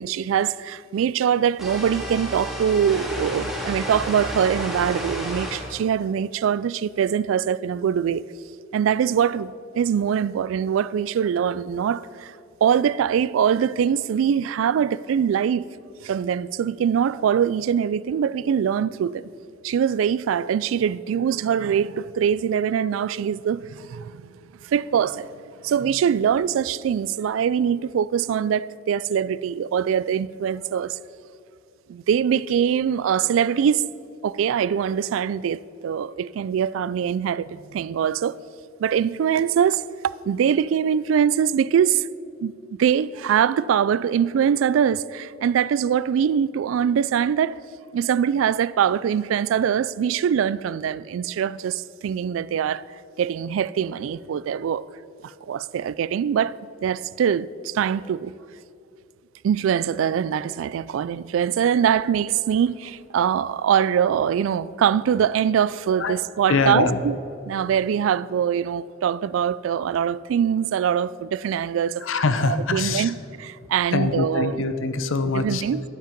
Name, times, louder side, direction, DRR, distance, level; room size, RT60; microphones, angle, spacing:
voice 1, 0.0-8.2 8.7-12.3 12.6-15.7 16.0-19.3 19.6-24.3 24.6-25.3 25.6-31.0 31.9-33.8 34.2-38.4 38.8-39.8 40.3-42.1 42.4-42.5 42.8-47.6 47.9-52.9 53.2-54.8 55.2-56.5 56.8-58.3 59.4-67.2 67.5-72.1 72.4-74.6 75.3-75.8, right 8 dB, 85° right, 0.3 m, -23 dB
sound 1, 1.6-5.7, equal, ahead, 2.1 m, -31 dB
voice 2, 66.5-67.0 72.0-73.1 73.9-75.6, left 4 dB, 90° left, 0.7 m, -23 dB
12.0 x 7.5 x 5.1 m
head